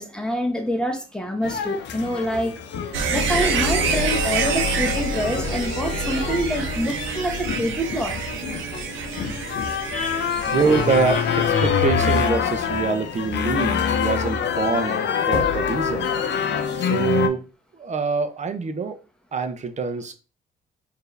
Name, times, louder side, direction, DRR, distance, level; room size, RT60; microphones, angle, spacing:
voice 1, 0.0-2.5 3.1-8.2 9.9-10.6 11.5-11.7, equal, 5° left, 1.0 m, -26 dB
sound 1, 1.4-17.3, left 7 dB, 65° left, 0.6 m, -26 dB
sound 2, 2.9-13.7 14.0-14.1, right 4 dB, 80° right, 0.8 m, -28 dB
voice 2, 10.5-16.1 16.8-17.5 17.8-19.0 19.3-20.1, right 5 dB, 35° right, 0.7 m, -25 dB
4.5 x 2.7 x 3.3 m
cardioid pair, 90°, 20 cm